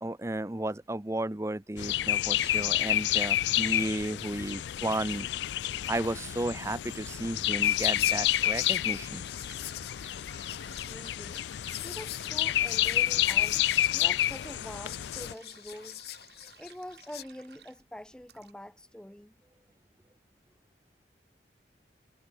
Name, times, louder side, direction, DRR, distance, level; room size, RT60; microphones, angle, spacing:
voice 1, 0.0-5.3 5.9-9.2 10.4-10.5, right 1 dB, 15° right, 0.7 m, -33 dB
sound 1, 1.8-15.3, left 13 dB, 85° left, 0.3 m, -29 dB
sound 2, 7.0-18.5, right 6 dB, 75° right, 7.0 m, -56 dB
Whispering, 7.6-17.2, left 14 dB, 65° left, 1.4 m, -44 dB
voice 2, 10.9-11.5 11.8-13.6 13.9-16.1 16.6-19.3, left 1 dB, 5° left, 0.4 m, -45 dB
head